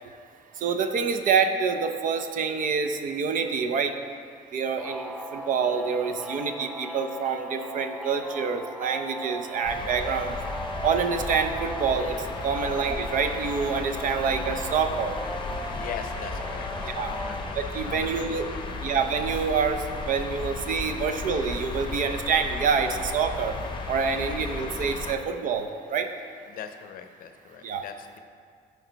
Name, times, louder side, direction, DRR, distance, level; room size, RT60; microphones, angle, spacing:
voice 1, 0.6-3.9 4.5-10.4 10.8-12.2 12.4-15.2 16.9-17.1 17.7-18.4 18.8-23.6 23.9-26.1 27.6-27.8, right 6 dB, 50° right, 7 dB, 0.6 m, -27 dB
sound 1, 4.8-17.5, right 1 dB, 5° right, 0.5 m, -37 dB
voice 2, 6.2-6.5 12.5-12.7 15.7-18.8 26.5-28.2, left 7 dB, 60° left, 7 dB, 0.6 m, -42 dB
sound 2, 9.6-25.2, left 3 dB, 30° left, 0.8 m, -35 dB
12.0 x 4.6 x 4.0 m, 2.2 s
cardioid pair, 110°, 17 cm